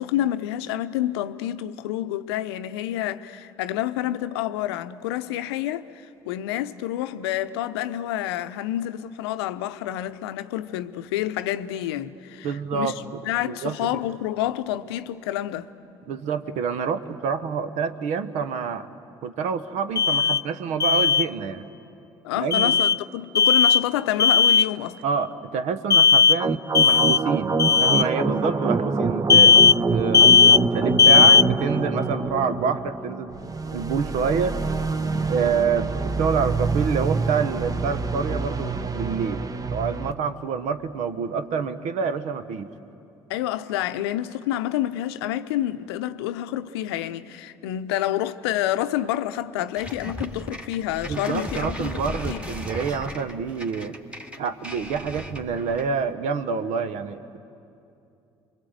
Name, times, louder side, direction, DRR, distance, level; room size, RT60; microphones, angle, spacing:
voice 1, 0.0-12.9 13.2-15.7 22.2-25.0 35.1-35.3 43.3-52.5, left 13 dB, 75° left, 0.7 m, -28 dB
voice 2, 12.4-14.0 16.1-18.9 19.2-21.6 22.4-22.8 25.0-29.6 29.9-33.3 33.7-34.6 35.3-42.7 51.1-53.9 54.4-57.4, right 6 dB, 65° right, 1.2 m, -27 dB
Alarm, 20.0-20.4 20.8-21.3 22.5-23.0 23.4-23.8 24.2-24.7 25.9-26.4 26.8-27.2 27.6-28.0 29.3-29.8 30.1-30.6 31.0-31.5, left 6 dB, 25° left, 0.5 m, -16 dB
sound 1, 26.4-40.1, right 3 dB, 25° right, 1.1 m, -26 dB
sound 2, 49.8-56.0, equal, 10° right, 2.4 m, -36 dB
29.0 x 22.5 x 8.1 m
hypercardioid pair, 50°, 13 cm